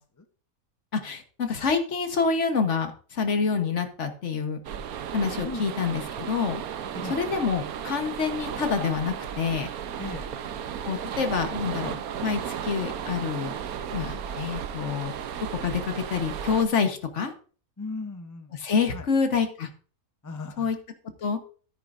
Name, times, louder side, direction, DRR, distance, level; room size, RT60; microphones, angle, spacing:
voice 1, 0.9-4.6 5.1-6.6 7.0-9.7 10.8-13.5 13.9-15.1 15.5-17.3 18.5-19.7 20.6-20.8 21.2-21.4, left 5 dB, 55° left, 7 dB, 1.4 m, -27 dB
sound 1, 4.6-16.6, right 8 dB, 80° right, 1.2 m, -34 dB
voice 2, 10.0-10.3 11.4-11.5 17.8-18.5 18.9-19.1 20.2-20.7, left 3 dB, 20° left, 7 dB, 0.5 m, -37 dB
13.0 x 9.0 x 2.5 m, 0.41 s
omnidirectional pair, 1.5 m